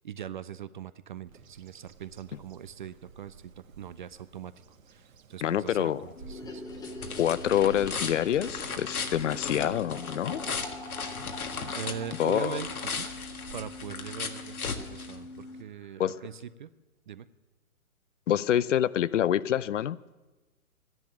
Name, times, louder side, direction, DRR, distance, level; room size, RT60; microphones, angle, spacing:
voice 1, 0.0-4.5 4.9-5.9 6.3-6.6 11.8-13.1 13.5-14.6 14.9-16.7 17.1-17.3, right 8 dB, 35° right, 0.4 m, -41 dB
Bird vocalization bird call bird song, 1.3-14.5, right 5 dB, 65° right, 1.6 m, -52 dB
voice 2, 5.4-6.0 7.2-10.4 12.2-12.6 16.0-16.2 18.3-20.0, left 10 dB, 60° left, 0.6 m, -26 dB
sound 1, 6.2-15.6, left 4 dB, 85° left, 1.7 m, -37 dB
sound 2, 6.3-14.5 14.8-14.9 15.1-15.2 15.5-15.6 15.8-16.4, left 2 dB, 10° left, 1.2 m, -46 dB
13.0 x 10.5 x 9.0 m
hypercardioid pair, 135°, 43 cm